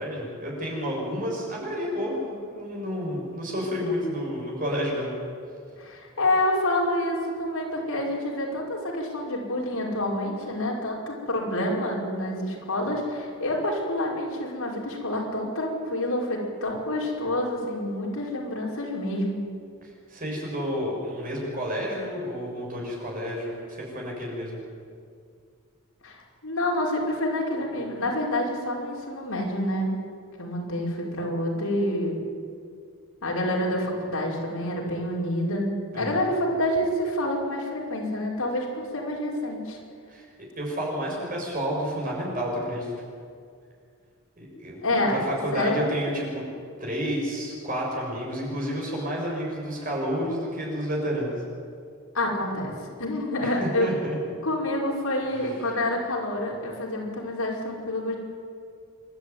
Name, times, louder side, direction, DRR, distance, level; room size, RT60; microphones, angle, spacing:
voice 1, 0.0-5.1 20.1-24.6 35.9-36.3 40.1-42.9 44.4-46.4 46.8-51.4 53.4-54.2 55.3-55.5, equal, 40° right, -2 dB, 6.8 m, -30 dB
voice 2, 5.8-19.4 26.0-29.9 30.4-32.2 33.2-39.8 44.8-45.2 45.5-45.9 52.1-52.7 53.0-53.9 54.4-58.2, left 1 dB, 70° left, -2 dB, 5.4 m, -28 dB
28.0 x 13.0 x 9.6 m, 2.2 s
head